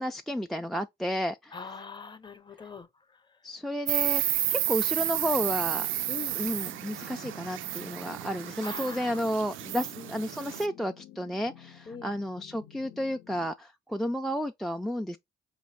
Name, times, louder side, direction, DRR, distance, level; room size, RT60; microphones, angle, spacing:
voice 1, 0.0-1.7 3.4-5.9 6.4-15.2, equal, ahead, 0.3 m, -32 dB
voice 2, 1.5-2.9 6.1-6.4 8.6-9.2 10.0-10.2 11.9-12.2, left 5 dB, 25° left, 0.7 m, -42 dB
Insect, 3.9-10.7, right 13 dB, 80° right, 0.4 m, -31 dB
sound 1, 4.7-13.5, left 12 dB, 80° left, 0.7 m, -52 dB
4.8 x 2.6 x 3.2 m
cardioid pair, 90°, 20 cm